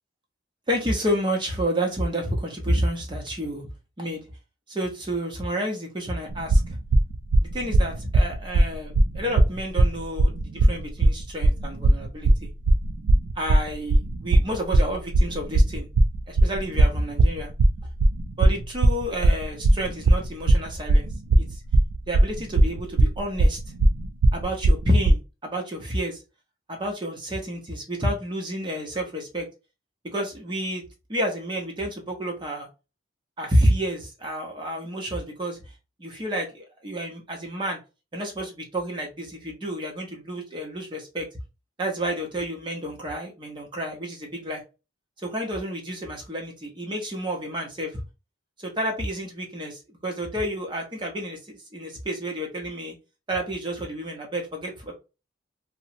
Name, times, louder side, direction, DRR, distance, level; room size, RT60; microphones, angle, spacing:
voice 1, 0.7-3.7 4.0-4.2 4.7-6.6 7.4-12.5 13.4-15.9 16.3-17.5 18.4-21.1 21.3-21.6 22.1-23.6 24.3-26.2 26.7-29.5 30.0-30.8 31.1-32.7 33.4-35.6 36.0-37.8 38.1-41.3 41.8-44.6 45.2-48.0 48.6-52.9 53.3-54.9, equal, 25° right, 1 dB, 0.7 m, -29 dB
sound 1, 6.3-25.1, right 1 dB, 65° right, 0.3 m, -18 dB
2.9 x 2.1 x 2.7 m, 0.29 s
head